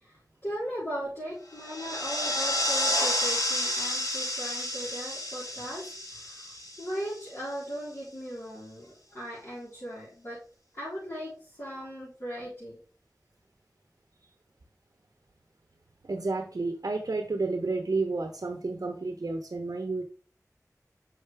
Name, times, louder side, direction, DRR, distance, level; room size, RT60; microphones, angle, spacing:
voice 1, 0.0-6.5 6.8-10.4 10.8-12.8, equal, 45° left, -11 dB, 4.1 m, -38 dB
sound 1, 1.6-7.4, left 1 dB, 65° left, 1.7 m, -30 dB
voice 2, 16.0-20.0, right 3 dB, 80° right, 4 dB, 0.9 m, -31 dB
6.4 x 5.7 x 3.4 m, 0.38 s
wide cardioid pair, 50°, 6 cm